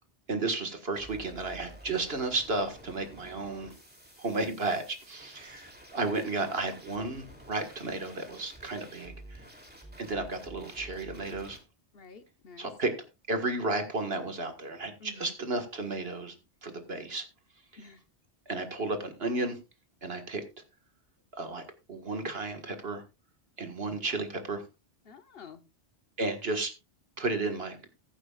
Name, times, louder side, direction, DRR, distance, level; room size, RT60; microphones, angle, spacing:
voice 1, 0.3-3.8 4.2-9.4 10.0-11.6 12.6-12.9 13.3-16.4 16.6-17.3 18.5-19.6 20.0-20.4 21.3-21.6 21.9-23.0 23.6-24.6 26.2-26.7 27.2-27.8, right 3 dB, 60° right, 6 dB, 2.0 m, -33 dB
sound 1, 0.9-11.6, right 1 dB, 10° right, 3.0 m, -51 dB
voice 2, 11.9-12.7 15.0-15.3 17.8-18.0 23.7-24.2 25.0-25.6, left 4 dB, 60° left, 10 dB, 1.2 m, -50 dB
15.0 x 11.5 x 2.4 m, 0.27 s
omnidirectional pair, 1.1 m